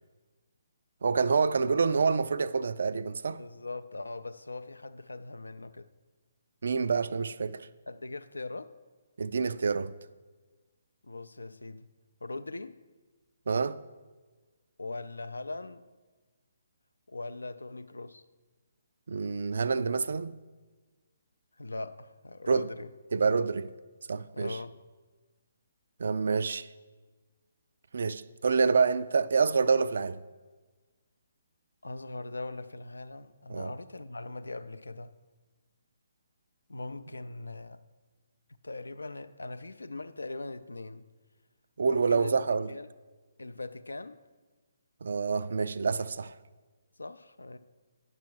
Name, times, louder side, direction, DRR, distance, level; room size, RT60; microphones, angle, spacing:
voice 1, 1.0-3.4 6.6-7.7 9.2-9.9 13.5-13.8 19.1-20.4 22.5-22.7 23.1-23.7 24.1-24.6 26.0-26.7 27.9-30.2 33.5-33.7 41.8-42.7 45.0-46.3, right 5 dB, 65° right, 0.3 m, -27 dB
voice 2, 3.4-5.9 7.9-8.7 11.0-11.9 12.2-12.8 14.8-15.9 17.1-18.2 21.6-22.9 24.3-24.8 31.8-35.2 36.7-37.8 38.6-41.0 41.9-42.4 42.7-42.9 43.4-44.2 47.0-47.6, left 2 dB, 80° left, 0.4 m, -40 dB
9.7 x 6.0 x 4.6 m
figure-of-eight pair, 140°, 0 cm